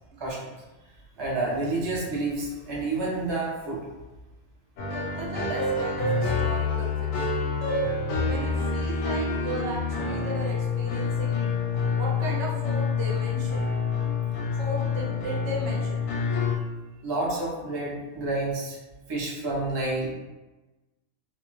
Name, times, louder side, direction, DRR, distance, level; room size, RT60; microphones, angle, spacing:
voice 1, 0.2-0.5 1.2-3.8 17.0-18.8 19.1-20.1, right 2 dB, 35° right, -5 dB, 0.4 m, -29 dB
sound 1, 4.8-16.6, left 4 dB, 90° left, 1.0 m, -27 dB
voice 2, 5.2-7.3 8.3-11.5 12.0-13.7 14.6-16.0, right 2 dB, 70° right, -2 dB, 0.9 m, -35 dB
2.5 x 2.2 x 3.0 m, 1.1 s
omnidirectional pair, 1.3 m